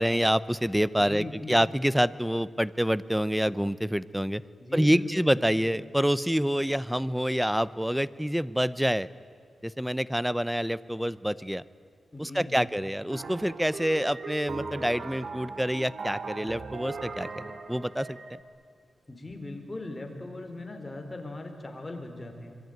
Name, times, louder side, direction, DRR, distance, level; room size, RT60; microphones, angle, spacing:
voice 1, 0.0-4.4 4.7-9.1 9.6-11.6 12.2-17.3 17.7-18.2, equal, 5° right, 18 dB, 0.7 m, -27 dB
voice 2, 1.0-1.6 4.6-5.6 12.1-12.7 19.1-22.5, left 2 dB, 20° left, 4 dB, 4.3 m, -39 dB
sound 1, 13.1-18.4, right 4 dB, 65° right, 2.6 m, -39 dB
26.5 x 22.0 x 9.4 m, 2.4 s
wide cardioid pair, 115°, 0 cm